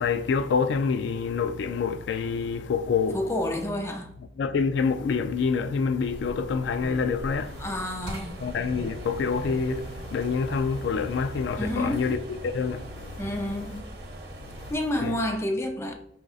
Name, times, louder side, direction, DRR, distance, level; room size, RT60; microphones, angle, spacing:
voice 1, 0.0-3.2 4.4-7.6 8.4-13.1 15.0-15.2, left 5 dB, 90° left, 0.3 m, -27 dB
voice 2, 3.1-4.1 7.6-8.4 11.6-12.1 13.2-13.8 14.7-15.9, left 1 dB, 15° left, 0.5 m, -29 dB
sound 1, 6.0-14.8, right 1 dB, 65° right, 0.9 m, -40 dB
5.0 x 3.9 x 2.4 m
head